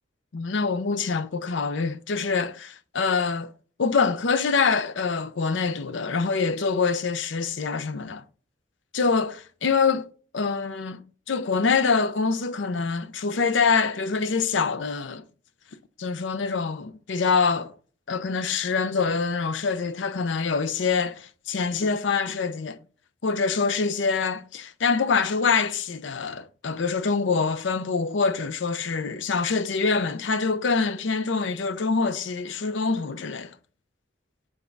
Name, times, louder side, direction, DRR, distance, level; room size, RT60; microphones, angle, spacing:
voice 1, 0.3-3.5 3.8-8.2 8.9-10.1 10.3-11.0 11.3-15.2 16.0-17.7 18.1-22.8 23.2-33.5, left 5 dB, 75° left, 0.6 m, -25 dB
7.1 x 3.6 x 3.8 m
head